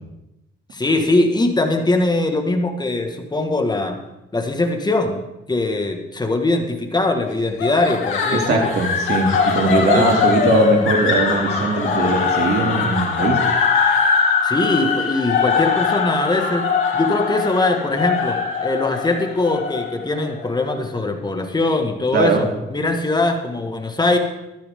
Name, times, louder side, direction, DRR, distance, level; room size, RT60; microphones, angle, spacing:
voice 1, 0.7-4.0 4.3-5.2 5.5-8.7 9.9-10.1 14.4-24.2, left 2 dB, 20° left, 5 dB, 1.9 m, -21 dB
sound 1, 7.6-20.8, left 5 dB, 85° left, 2.9 m, -21 dB
voice 2, 8.3-13.4 22.1-22.4, right 3 dB, 55° right, 1 dB, 2.8 m, -20 dB
14.0 x 13.5 x 3.8 m, 0.94 s
cardioid pair, 90°, 20 cm